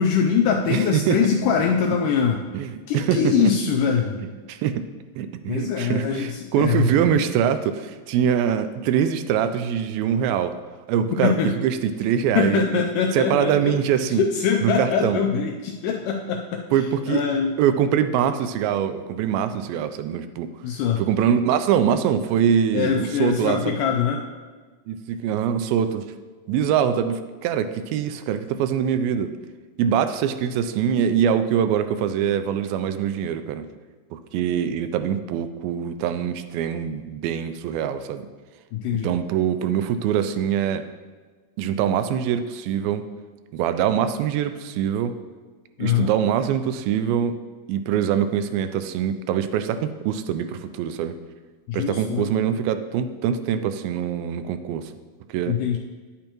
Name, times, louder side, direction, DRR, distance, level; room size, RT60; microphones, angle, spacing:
voice 1, 0.0-2.4 2.9-4.2 5.5-7.2 11.2-11.5 12.4-13.8 14.2-16.6 17.1-17.5 20.6-21.0 22.7-24.2 38.7-39.1 45.8-46.1 51.7-52.3 55.5-55.8, left 7 dB, 80° left, 2 dB, 1.9 m, -23 dB
voice 2, 0.7-1.2 2.5-2.7 2.9-3.5 4.5-4.9 5.2-10.6 10.9-11.3 11.6-12.9 13.1-14.2 14.6-15.2 16.7-17.2 17.6-20.5 21.0-23.8 24.9-26.1 26.5-29.3 29.8-33.6 34.1-38.3 39.0-40.8 41.6-43.1 43.5-45.2 45.8-47.4 47.7-51.2 51.7-54.9 55.3-55.6, right 9 dB, 85° right, 10 dB, 2.4 m, -23 dB
10.0 x 8.6 x 3.0 m, 1.4 s
omnidirectional pair, 4.2 m